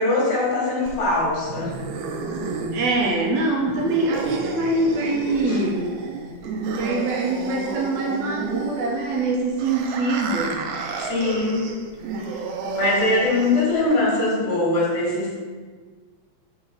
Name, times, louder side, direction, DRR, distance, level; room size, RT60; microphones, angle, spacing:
voice 1, 0.0-1.7 5.5-5.6 11.0-11.6 12.7-15.3, left 2 dB, 80° left, -5 dB, 3.1 m, -22 dB
sound 1, 0.9-13.9, right 4 dB, 90° right, 2.1 m, -31 dB
voice 2, 2.7-5.9 6.8-10.7, right 2 dB, 75° right, -1 dB, 2.2 m, -24 dB
5.9 x 3.8 x 5.6 m, 1.5 s
omnidirectional pair, 3.4 m